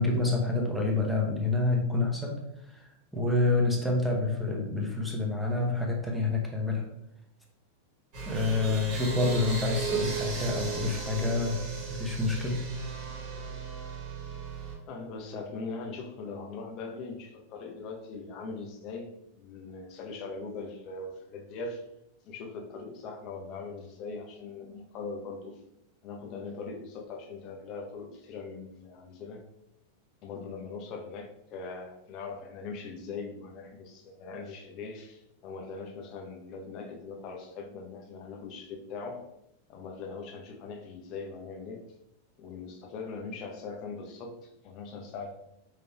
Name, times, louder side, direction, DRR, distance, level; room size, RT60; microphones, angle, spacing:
voice 1, 0.0-2.4 2.6-2.9 3.1-6.8 8.3-11.6 11.9-12.7, left 3 dB, ahead, -1 dB, 0.8 m, -28 dB
sound 1, 8.1-14.7, right 6 dB, 40° right, 1.4 m, -36 dB
voice 2, 14.9-21.9 22.2-25.6 26.0-29.4 30.2-39.3 39.7-41.8 42.4-45.3, left 4 dB, 40° left, 2 dB, 0.7 m, -41 dB
5.2 x 3.3 x 2.3 m, 0.82 s
figure-of-eight pair, 90°, 0 cm